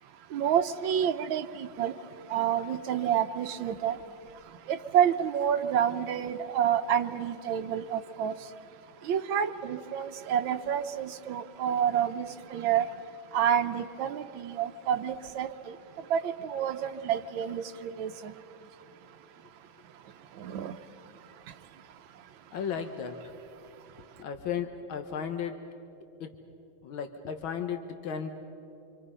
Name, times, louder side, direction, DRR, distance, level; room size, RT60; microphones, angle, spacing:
voice 1, 0.3-1.9 2.3-4.0 4.7-8.3 9.1-12.9 13.3-15.7 16.1-18.3 20.4-20.7, right 9 dB, 85° right, 8 dB, 1.6 m, -28 dB
voice 2, 22.5-23.2 24.2-25.6 26.2-26.3 26.8-28.3, left 7 dB, 85° left, 7 dB, 1.9 m, -34 dB
27.0 x 26.5 x 5.5 m, 2.9 s
omnidirectional pair, 2.1 m